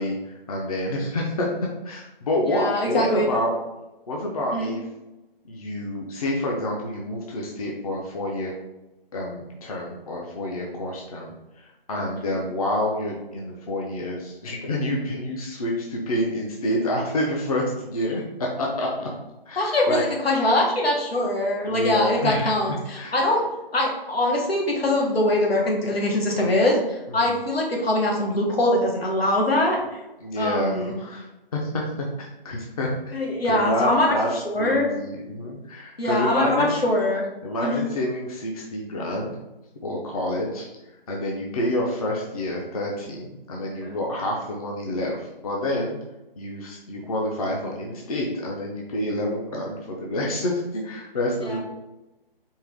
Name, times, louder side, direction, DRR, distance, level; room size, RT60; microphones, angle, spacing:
voice 1, 0.0-1.5 1.8-3.5 4.1-4.8 5.5-8.5 9.1-19.1 19.5-20.0 21.6-22.5 22.9-23.2 27.1-27.4 30.2-31.2 31.5-31.8 32.2-32.9 33.5-34.3 34.6-36.8 37.4-39.4 39.8-40.7 41.1-46.0 46.4-51.6, left 1 dB, 40° left, -1 dB, 0.7 m, -28 dB
voice 2, 2.5-3.2 4.5-4.7 19.6-23.4 23.7-30.0 30.4-31.0 33.1-34.2 34.4-34.9 36.0-37.3 37.6-37.8 43.8-44.0 51.4-51.6, left 1 dB, 80° left, -1 dB, 1.5 m, -23 dB
4.5 x 3.1 x 3.5 m, 0.98 s
figure-of-eight pair, 155°, 30 cm